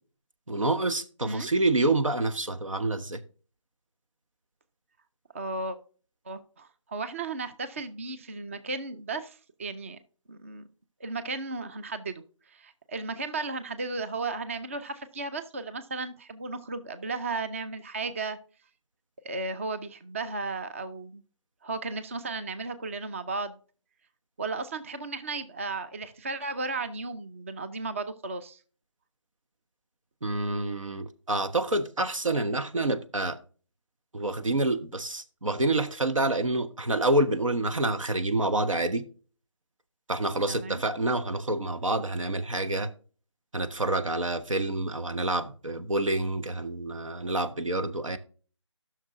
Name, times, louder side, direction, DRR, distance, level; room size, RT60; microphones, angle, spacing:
voice 1, 0.5-3.2 30.2-33.4 34.1-39.0 40.1-42.9 43.5-48.2, right 2 dB, 85° right, 1.1 m, -27 dB
voice 2, 5.3-5.8 6.3-10.0 10.3-10.6 11.0-12.2 12.5-18.4 19.2-21.2 21.6-23.6 24.4-28.6 40.5-40.8, right 3 dB, 25° right, 0.4 m, -35 dB
13.0 x 6.3 x 2.5 m
figure-of-eight pair, 160°, 16 cm